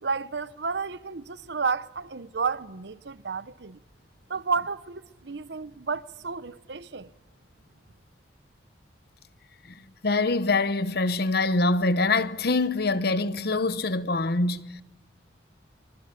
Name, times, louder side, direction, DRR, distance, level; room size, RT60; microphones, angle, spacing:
voice 1, 0.0-3.8 4.3-7.1, right 5 dB, 65° right, 0.8 m, -31 dB
voice 2, 10.0-14.8, left 3 dB, 60° left, 1.0 m, -24 dB
25.0 x 24.0 x 8.5 m
head